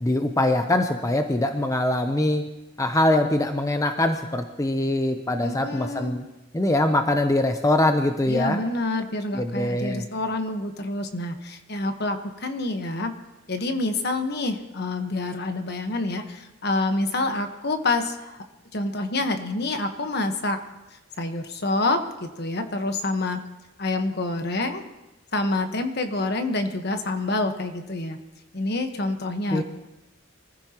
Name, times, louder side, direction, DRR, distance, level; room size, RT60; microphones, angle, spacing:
voice 1, 0.0-2.4 2.8-6.2 6.5-8.6 9.3-10.0 29.5-29.6, left 1 dB, 15° left, 6 dB, 0.7 m, -23 dB
voice 2, 5.4-6.1 8.3-13.1 13.5-18.4 18.7-20.6 21.2-23.4 23.8-24.8 25.3-28.2 28.5-29.6, left 2 dB, 55° left, 6 dB, 1.3 m, -27 dB
24.5 x 14.5 x 3.0 m, 1.0 s
head